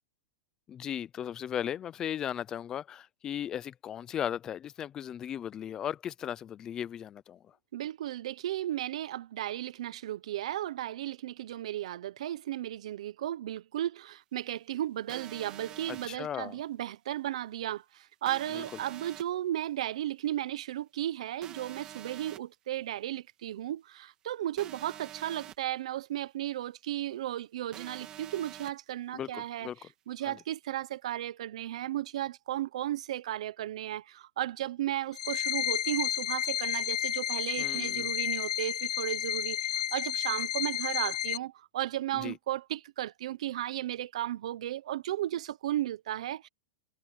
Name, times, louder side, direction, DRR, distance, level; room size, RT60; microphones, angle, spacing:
voice 1, 0.7-7.6 15.9-16.6 18.5-18.6 29.1-29.9 30.2-30.4 37.6-38.1 42.1-42.4, left 9 dB, 15° left, 0.5 m, -37 dB
voice 2, 7.7-29.7 30.1-46.5, right 13 dB, 70° right, 0.8 m, -35 dB
sound 1, 15.1-16.1 18.2-19.2 21.4-22.4 24.6-25.5 27.7-28.7, right 11 dB, 20° right, 2.8 m, -46 dB
sound 2, 35.1-41.4, left 10 dB, 85° left, 1.2 m, -31 dB
supercardioid pair, 170°, 3 cm